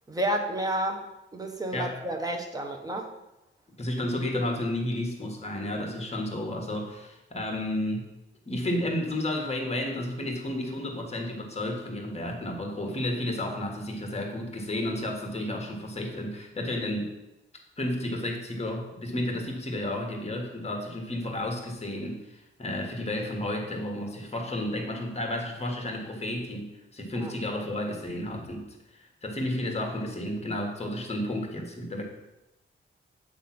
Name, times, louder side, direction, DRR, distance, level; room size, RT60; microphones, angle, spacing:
voice 1, 0.1-3.1 27.2-27.3, right 1 dB, 15° right, 3 dB, 1.0 m, -31 dB
voice 2, 3.8-8.1 8.5-17.1 17.8-28.7 28.9-32.0, left 1 dB, 30° left, 2 dB, 1.4 m, -32 dB
8.3 x 3.5 x 5.9 m, 0.93 s
wide cardioid pair, 125°, 21 cm